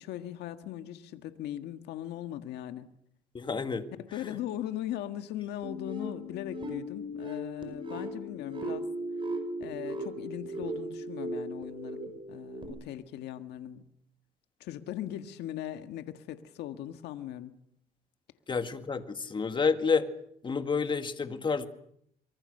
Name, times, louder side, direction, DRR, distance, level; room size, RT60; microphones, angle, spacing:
voice 1, 0.0-2.9 3.9-8.8 9.6-13.8 14.6-17.5, left 12 dB, 80° left, 1.7 m, -39 dB
voice 2, 3.3-3.8 18.5-20.0 20.4-21.7, left 5 dB, 30° left, 2.0 m, -29 dB
sound 1, 5.6-12.7, equal, 30° right, 5.4 m, -37 dB
24.5 x 24.0 x 6.7 m
cardioid pair, 110°, 17 cm